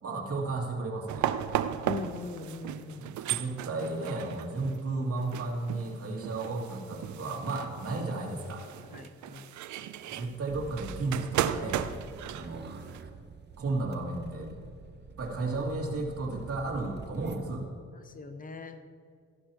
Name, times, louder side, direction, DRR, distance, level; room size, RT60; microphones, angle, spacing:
voice 1, 0.0-1.3 3.0-8.6 10.2-11.8 12.3-12.8 13.6-14.5 15.2-17.7, right 2 dB, 50° right, -2 dB, 2.5 m, -33 dB
sound 1, 1.1-13.0, right 11 dB, 75° right, 0.6 m, -35 dB
voice 2, 1.8-3.1 8.9-9.5 18.0-18.8, left 4 dB, 25° left, 8 dB, 0.8 m, -40 dB
sound 2, 10.5-17.4, right 5 dB, 35° right, 0.8 m, -47 dB
14.0 x 11.5 x 3.0 m, 2.2 s
cardioid pair, 90°, 30 cm